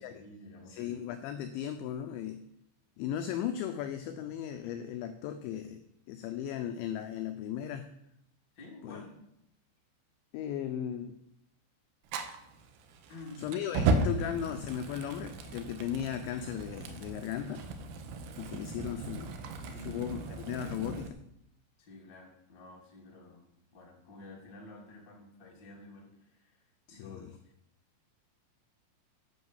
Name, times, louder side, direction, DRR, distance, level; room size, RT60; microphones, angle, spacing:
voice 1, 0.0-1.0 8.5-9.1 13.1-13.5 18.9-19.3 19.6-20.0 21.8-27.2, left 2 dB, 35° left, -2 dB, 1.9 m, -51 dB
voice 2, 0.7-2.4 3.0-5.8 6.1-7.9 8.8-9.0 10.3-11.2 13.4-17.6 18.4-19.3 19.9-21.2 26.9-27.3, left 10 dB, 80° left, 8 dB, 2.7 m, -36 dB
Fire, 12.1-21.1, right 3 dB, 85° right, 2.2 m, -35 dB
11.0 x 5.4 x 7.3 m, 0.78 s
omnidirectional pair, 5.8 m